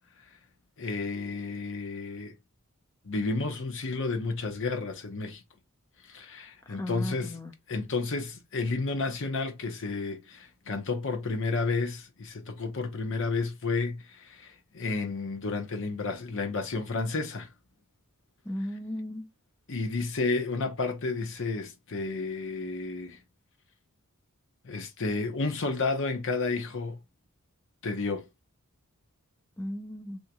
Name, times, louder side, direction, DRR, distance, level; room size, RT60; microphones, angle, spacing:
voice 1, 0.8-2.4 3.0-5.4 6.0-7.4 7.7-17.5 19.7-23.2 24.6-27.0 27.8-28.3, left 3 dB, 60° left, 0.8 m, -31 dB
voice 2, 6.7-7.5 18.4-19.3 29.6-30.2, left 1 dB, 10° left, 0.4 m, -36 dB
3.4 x 2.7 x 2.8 m
head